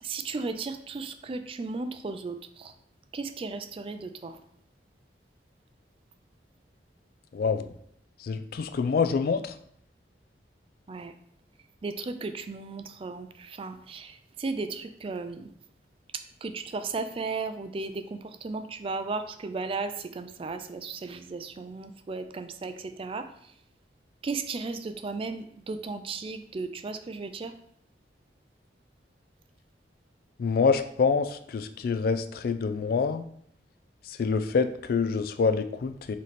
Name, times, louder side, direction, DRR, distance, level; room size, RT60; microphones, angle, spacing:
voice 1, 0.0-2.7 3.1-4.4 10.9-11.1 11.8-15.5 16.4-23.3 24.2-27.5, right 4 dB, 30° right, 9 dB, 0.3 m, -35 dB
voice 2, 7.3-7.7 8.2-9.5 30.4-33.2 34.2-36.1, left 5 dB, 55° left, 9 dB, 0.3 m, -26 dB
4.1 x 3.1 x 4.0 m, 0.68 s
head